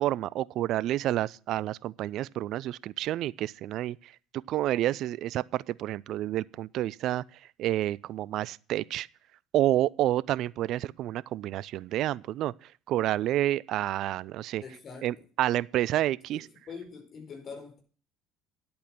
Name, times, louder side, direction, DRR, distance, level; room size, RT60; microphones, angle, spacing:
voice 1, 0.0-7.2 7.6-9.1 9.5-14.6 15.0-16.5, right 13 dB, 60° right, 0.4 m, -29 dB
voice 2, 14.6-15.1 16.3-16.4 16.7-17.8, left 5 dB, 45° left, 4.5 m, -43 dB
10.5 x 8.6 x 6.0 m
hypercardioid pair, 65°, 0 cm